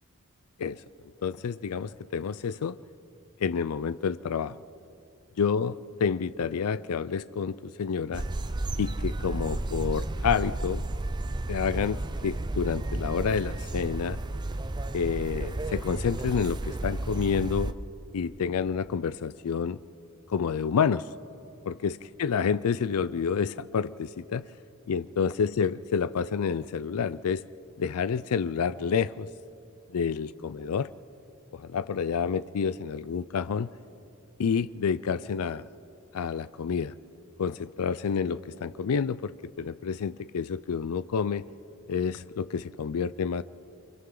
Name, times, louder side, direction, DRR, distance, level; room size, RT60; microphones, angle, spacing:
voice 1, 1.2-2.8 3.4-4.6 5.4-8.2 8.8-10.8 11.5-14.2 14.9-17.7 18.1-19.8 20.3-21.1 21.6-24.5 24.9-27.4 27.8-29.3 29.9-30.9 31.5-33.7 34.4-35.7 36.1-36.9 37.4-41.5 41.9-43.4, left 6 dB, 90° left, 15 dB, 0.4 m, -29 dB
sound 1, 8.1-17.7, right 2 dB, 20° right, 0.5 m, -32 dB
29.0 x 26.0 x 3.9 m, 2.7 s
head